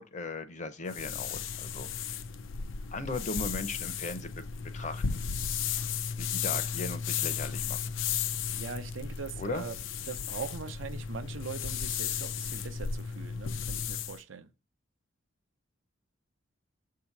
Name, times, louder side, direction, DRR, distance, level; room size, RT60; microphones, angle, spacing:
voice 1, 0.0-1.9 2.9-4.3 4.7-5.2 6.2-7.8 9.4-9.6, left 3 dB, 40° left, 0.6 m, -37 dB
sound 1, 0.9-14.2, left 7 dB, 80° left, 0.4 m, -34 dB
voice 2, 8.5-9.8 10.1-14.5, right 5 dB, 90° right, 0.6 m, -41 dB
7.1 x 2.8 x 5.8 m
head